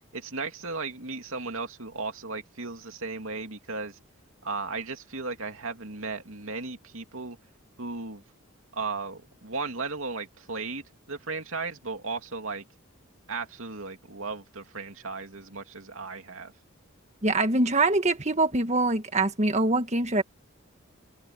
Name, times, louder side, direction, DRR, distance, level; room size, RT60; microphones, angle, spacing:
voice 1, 0.1-4.0 4.4-7.4 7.8-8.2 8.7-12.6 13.3-16.5, right 3 dB, 65° right, 2.8 m, -35 dB
voice 2, 17.2-20.2, right 2 dB, 30° right, 1.7 m, -24 dB
head